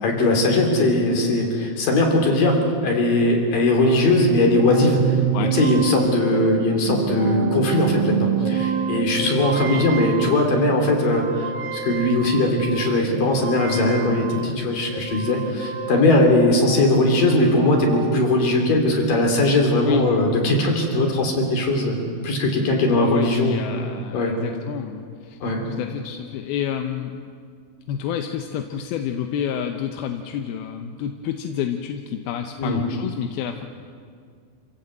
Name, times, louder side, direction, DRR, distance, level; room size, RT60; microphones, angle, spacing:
voice 1, 0.0-5.2 5.5-22.0 22.2-23.6 24.1-24.4 25.4-25.6 32.6-32.8, left 2 dB, 55° left, 2 dB, 4.5 m, -20 dB
sound 1, 3.8-14.7 14.9-18.8, right 9 dB, 65° right, 2.5 m, -28 dB
voice 2, 22.8-27.1 27.9-33.6, left 9 dB, 75° left, 5 dB, 2.5 m, -29 dB
27.0 x 16.0 x 8.0 m, 2.2 s
omnidirectional pair, 4.9 m